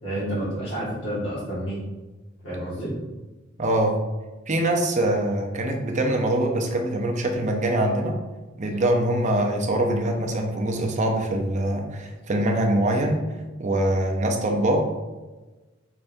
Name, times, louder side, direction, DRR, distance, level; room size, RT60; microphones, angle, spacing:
voice 1, 0.0-1.8 2.4-2.9, right 1 dB, 80° left, -11 dB, 1.4 m, -29 dB
voice 2, 3.6-4.0 4.5-8.1 8.6-13.2 13.6-15.0, right 1 dB, 35° right, 2 dB, 0.6 m, -23 dB
5.2 x 3.3 x 2.6 m, 1.2 s
head